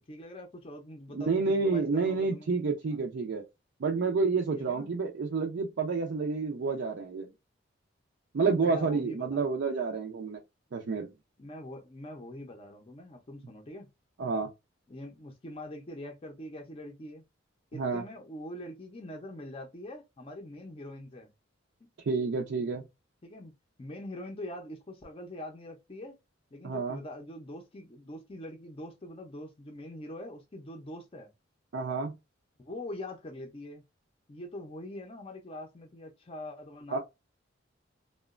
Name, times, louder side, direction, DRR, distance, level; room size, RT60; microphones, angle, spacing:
voice 1, 0.0-2.5 2.9-3.0 4.6-4.9 8.6-9.4 11.4-13.9 14.9-17.2 17.7-21.3 21.8-21.9 23.2-23.5 23.8-26.2 26.5-31.3 32.6-33.8 34.3-37.0, left 1 dB, 30° left, 0.5 m, -43 dB
voice 2, 1.1-3.4 3.8-7.3 8.3-10.4 10.7-11.1 14.2-14.5 17.7-18.0 22.1-22.8 26.6-27.0 31.7-32.1 36.9-37.0, right 4 dB, 65° right, 0.4 m, -29 dB
2.8 x 2.1 x 2.3 m
head